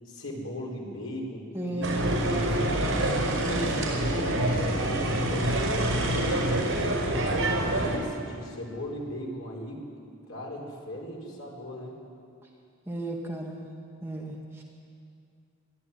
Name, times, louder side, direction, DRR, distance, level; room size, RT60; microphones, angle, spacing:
voice 1, 0.0-1.9 2.2-3.1 3.4-4.0 4.5-7.0 7.5-9.8 10.3-12.0, equal, 85° left, -1 dB, 4.8 m, -38 dB
voice 2, 1.5-2.2 3.4-3.6 12.9-13.7 14.0-14.6, right 1 dB, 10° right, -1 dB, 1.6 m, -34 dB
sound 1, 1.8-8.0, right 1 dB, 70° right, 5.2 m, -26 dB
21.5 x 14.0 x 9.7 m, 2.5 s
head